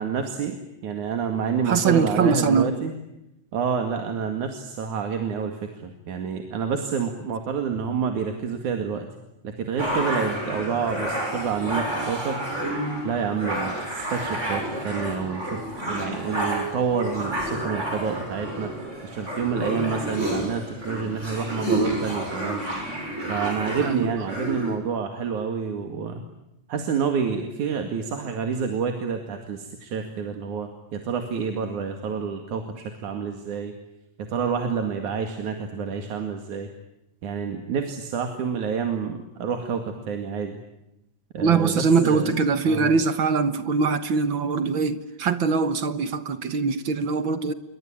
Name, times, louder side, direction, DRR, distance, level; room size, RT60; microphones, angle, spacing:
voice 1, 0.0-2.9 3.5-9.1 9.4-12.4 13.0-18.7 19.0-22.6 23.3-26.2 26.7-33.7 34.3-36.7 37.2-40.6 41.3-42.3 42.7-42.9, right 6 dB, 75° right, 3.6 m, -28 dB
voice 2, 1.7-2.7 23.8-24.1 41.4-47.5, right 5 dB, 50° right, 1.6 m, -22 dB
sound 1, 9.8-24.8, right 1 dB, 20° right, 7.3 m, -30 dB
28.0 x 23.5 x 8.9 m
omnidirectional pair, 3.5 m